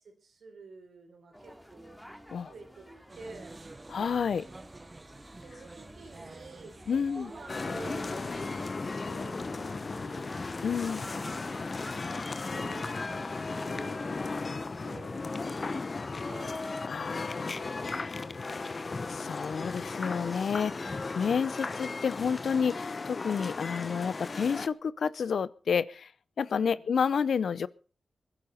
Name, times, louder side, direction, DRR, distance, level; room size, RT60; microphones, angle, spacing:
voice 1, 0.0-2.0 2.5-3.6 5.3-11.7 12.5-14.4 14.8-16.8 17.1-19.0 21.4-21.7 26.5-26.9, right 3 dB, 80° right, 4 dB, 4.2 m, -50 dB
sound 1, 1.3-15.0, equal, ahead, 3.1 m, -51 dB
sound 2, 3.1-8.7, right 2 dB, 35° right, 0.8 m, -49 dB
voice 2, 3.9-4.5 6.9-7.3 10.6-11.0 16.9-17.6 19.1-26.1 26.4-27.7, left 6 dB, 80° left, 18 dB, 0.6 m, -30 dB
sound 3, 7.5-24.7, left 3 dB, 50° left, 0.9 m, -36 dB
21.5 x 11.0 x 4.2 m, 0.38 s
cardioid pair, 45°, 0 cm